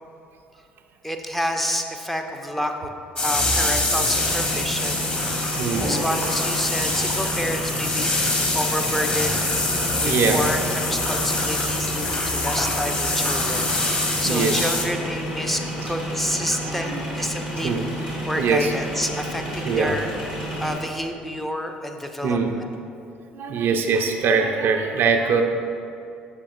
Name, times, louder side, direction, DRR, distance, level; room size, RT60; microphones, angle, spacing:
voice 1, 1.0-2.9 3.2-5.1 5.8-8.1 8.5-9.7 10.0-17.8 18.3-20.1 20.6-22.4, equal, 5° left, 4 dB, 0.6 m, -29 dB
sound 1, 3.2-14.8, left 2 dB, 25° left, 1.1 m, -25 dB
sound 2, 4.1-20.8, equal, 80° left, 1.2 m, -31 dB
voice 2, 5.5-6.3 6.8-7.1 9.9-10.4 12.3-12.4 13.7-13.8 14.2-14.7 16.5-17.3 17.6-17.9 18.4-18.7 19.6-20.0 22.2-22.6 23.3-25.4, right 5 dB, 50° right, 4 dB, 0.5 m, -24 dB
7.0 x 6.9 x 2.6 m, 2.6 s
figure-of-eight pair, 50°, 5 cm